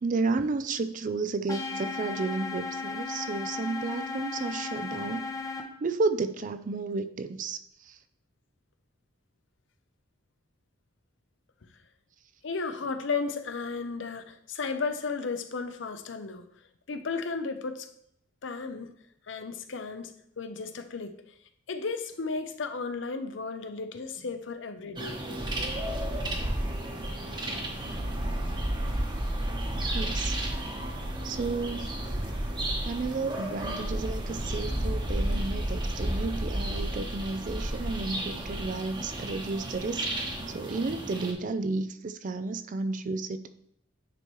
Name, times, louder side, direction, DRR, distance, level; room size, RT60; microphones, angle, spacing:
voice 1, 0.0-5.3 5.8-8.0 29.9-30.5 31.2-32.0 32.8-40.1 40.5-43.5, right 3 dB, 40° right, 11 dB, 0.4 m, -32 dB
sound 1, 1.5-5.6, left 4 dB, 20° left, 0.7 m, -35 dB
voice 2, 12.4-16.4 16.9-17.9 18.4-18.9 19.3-21.2 21.7-25.2, left 4 dB, 70° left, 8 dB, 0.6 m, -34 dB
sound 2, 25.0-41.3, right 1 dB, 25° right, 1.1 m, -32 dB
9.8 x 4.4 x 3.1 m, 0.72 s
head